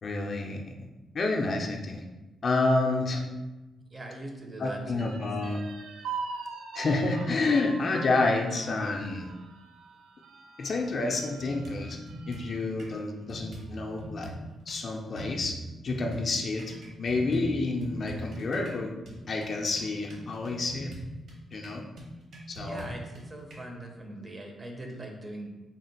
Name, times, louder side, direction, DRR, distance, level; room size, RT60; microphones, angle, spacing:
voice 1, 0.0-0.8 1.1-2.0 2.4-3.2 4.6-5.6 6.7-9.3 10.6-12.0 12.3-14.3 14.7-15.6 15.8-18.9 19.3-20.9 21.5-21.8 22.5-22.9, left 3 dB, 40° left, 1 dB, 0.4 m, -29 dB
voice 2, 3.9-5.5 22.6-25.5, right 1 dB, 25° right, 2 dB, 0.5 m, -42 dB
sound 1, 5.0-12.6 13.1-13.2 13.6-14.2, right 5 dB, 80° right, 0.3 m, -43 dB
sound 2, 11.4-13.0 13.3-14.8 15.2-23.6, right 1 dB, 60° right, 1.1 m, -42 dB
3.6 x 2.4 x 3.9 m, 1.1 s
cardioid pair, 135°, 0 cm